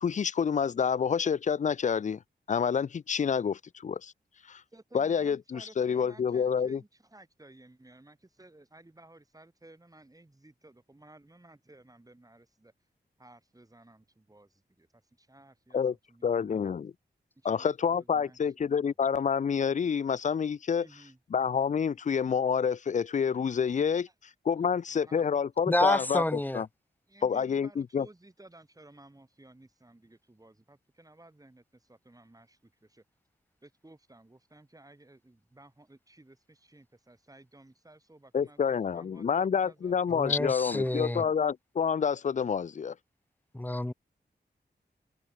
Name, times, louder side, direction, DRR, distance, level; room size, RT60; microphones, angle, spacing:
voice 1, 0.0-2.2 2.5-4.1 4.5-4.6 4.9-6.8 15.7-15.9 16.2-16.9 17.4-20.9 21.3-24.1 24.5-26.7 27.2-28.1 38.3-42.9, left 7 dB, 45° left, 0.4 m, -28 dB
voice 2, 4.7-12.7 13.2-15.8 16.1-16.7 17.3-18.7 20.8-21.2 24.0-24.1 24.6-25.3 27.1-33.0 33.6-39.9 40.7-41.3, right 2 dB, 20° right, 4.5 m, -56 dB
voice 3, 25.7-26.6 40.1-41.2 43.5-43.9, left 1 dB, 10° left, 0.9 m, -28 dB
wide cardioid pair, 80°, 18 cm